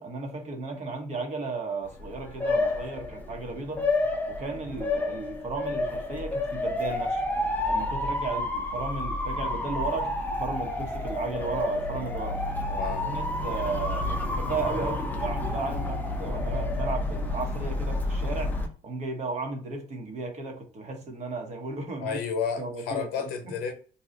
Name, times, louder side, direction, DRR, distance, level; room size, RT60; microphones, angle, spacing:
voice 1, 0.0-3.8 4.3-7.2 7.7-10.1 10.4-12.4 13.0-18.5 18.8-22.2 22.6-23.5, right 3 dB, 45° right, 1.1 m, -34 dB
Motor vehicle (road) / Siren, 1.9-18.7, left 2 dB, 10° left, 0.6 m, -30 dB
voice 2, 12.7-13.1 22.0-23.7, left 6 dB, 85° left, 0.7 m, -31 dB
2.8 x 2.3 x 3.8 m
cardioid pair, 115°, 16 cm